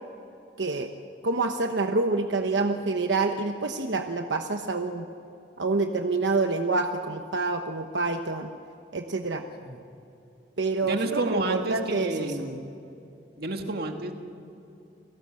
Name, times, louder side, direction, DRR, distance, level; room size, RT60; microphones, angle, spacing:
voice 1, 0.6-0.9 1.2-5.1 5.6-8.5 8.9-9.4 10.6-12.3, right 3 dB, 90° right, 5 dB, 1.0 m, -27 dB
voice 2, 9.4-9.8 10.8-12.7 13.4-14.1, right 2 dB, 60° right, 4 dB, 2.0 m, -30 dB
29.5 x 18.5 x 7.7 m, 2.8 s
head